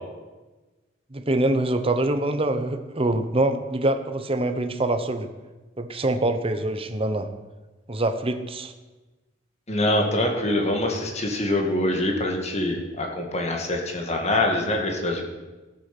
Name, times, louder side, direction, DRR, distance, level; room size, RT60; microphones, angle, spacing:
voice 1, 1.1-5.3 5.8-7.3 7.9-8.7, right 2 dB, 30° right, 8 dB, 1.0 m, -24 dB
voice 2, 9.7-15.2, left 1 dB, 35° left, 2 dB, 2.1 m, -24 dB
15.0 x 8.7 x 6.1 m, 1.2 s
head